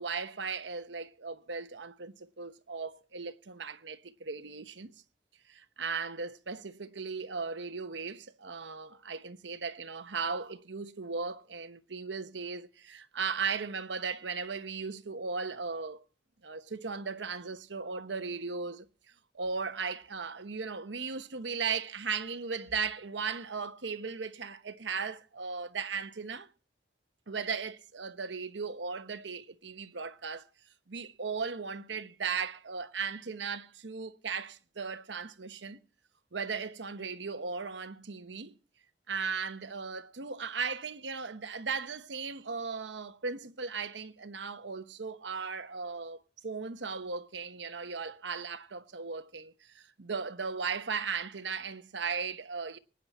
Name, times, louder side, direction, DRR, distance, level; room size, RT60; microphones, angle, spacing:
voice 1, 0.0-4.9 5.5-16.0 16.4-18.9 19.3-26.5 27.3-30.4 30.9-35.8 36.3-38.6 39.1-52.8, right 5 dB, 80° right, 1.0 m, -37 dB
24.0 x 9.7 x 4.3 m
head